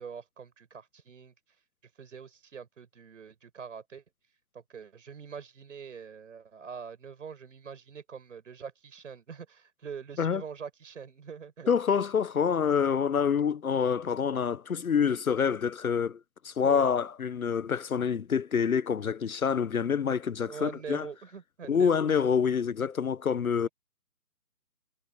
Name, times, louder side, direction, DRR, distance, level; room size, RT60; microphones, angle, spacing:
voice 1, 0.0-1.3 2.0-4.0 4.5-11.7 16.6-16.9 20.4-22.2, right 6 dB, 50° right, 6.5 m, -44 dB
voice 2, 11.7-16.2 16.4-21.1 21.7-23.7, left 7 dB, 60° left, 0.8 m, -27 dB
figure-of-eight pair, 155°, 48 cm